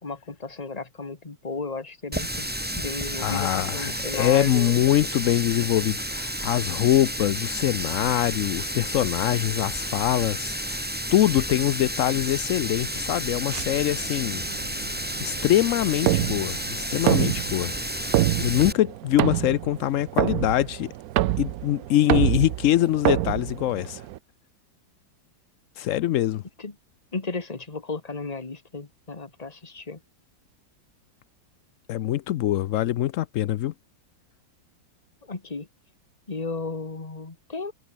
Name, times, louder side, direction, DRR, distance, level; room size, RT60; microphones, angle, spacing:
voice 1, 0.0-2.5 2.7-4.8 26.6-26.7 27.1-30.0 35.3-35.7 36.3-37.7, left 3 dB, 20° left, 1.7 m, -34 dB
Water tap faucet, 2.1-18.7, equal, 5° right, 3.1 m, -31 dB
voice 2, 3.2-10.8 11.1-14.4 15.2-18.1 18.4-20.9 21.4-24.0 25.8-26.4 31.9-33.7, left 13 dB, 80° left, 0.7 m, -24 dB
sound 1, 13.5-24.2, right 15 dB, 70° right, 0.9 m, -27 dB
omnidirectional pair, 2.0 m